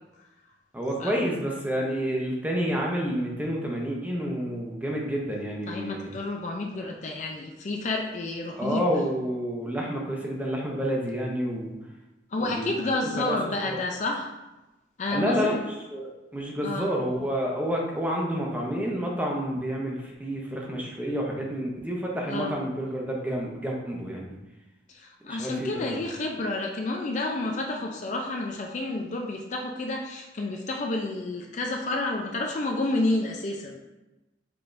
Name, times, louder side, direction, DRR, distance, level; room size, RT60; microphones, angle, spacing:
voice 1, 0.7-6.1 8.6-11.7 12.4-12.7 13.2-13.4 13.6-13.8 15.1-15.6 15.9-24.3 25.3-26.0, equal, 10° right, -2 dB, 0.7 m, -29 dB
voice 2, 5.7-8.8 12.3-14.3 15.0-15.6 16.6-16.9 22.3-22.6 24.9-33.8, left 2 dB, 40° left, 1 dB, 0.4 m, -30 dB
6.0 x 3.4 x 2.6 m, 1.0 s
head